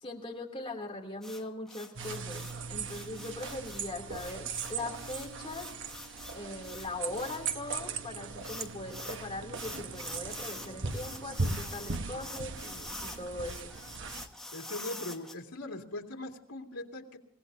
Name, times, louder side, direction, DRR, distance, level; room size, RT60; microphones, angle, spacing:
voice 1, 0.0-5.7 6.3-13.7, left 2 dB, 25° left, 0 dB, 2.7 m, -40 dB
sound 1, 1.2-7.6 8.4-9.2 9.5-15.3, left 2 dB, ahead, 1.3 m, -45 dB
sound 2, 2.0-14.3, right 4 dB, 55° right, 1.1 m, -39 dB
voice 2, 14.5-17.2, left 2 dB, 90° left, 1 dB, 2.3 m, -40 dB
28.0 x 17.0 x 2.7 m, 0.67 s
head